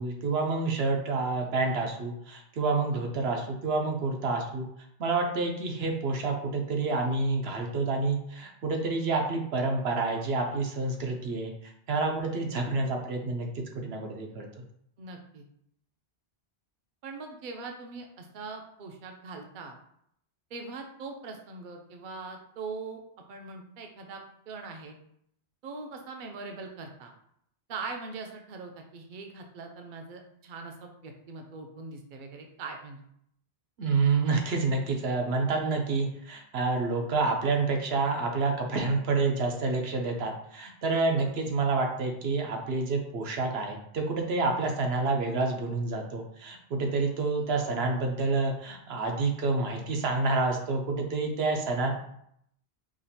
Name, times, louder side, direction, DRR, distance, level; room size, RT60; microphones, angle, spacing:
voice 1, 0.0-4.7 5.0-11.5 11.9-14.5 33.8-51.9, right 3 dB, 75° right, 2 dB, 0.9 m, -28 dB
voice 2, 2.9-3.3 12.3-12.5 15.0-15.4 17.0-19.8 20.5-23.0 23.3-24.2 24.5-25.0 25.6-27.1 27.7-33.0 41.2-41.5, right 4 dB, 55° right, 3 dB, 0.7 m, -41 dB
5.0 x 2.4 x 2.7 m, 0.71 s
omnidirectional pair, 1.1 m